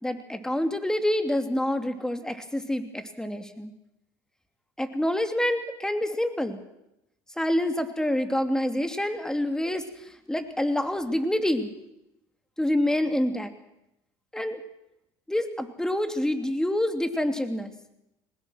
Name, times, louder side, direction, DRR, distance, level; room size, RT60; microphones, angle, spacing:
voice 1, 0.0-3.7 4.8-6.6 7.4-11.7 12.6-13.5 14.3-14.6 15.3-17.7, left 1 dB, 5° left, 8 dB, 2.8 m, -27 dB
22.0 x 20.0 x 6.4 m, 0.85 s
supercardioid pair, 80°, 11 cm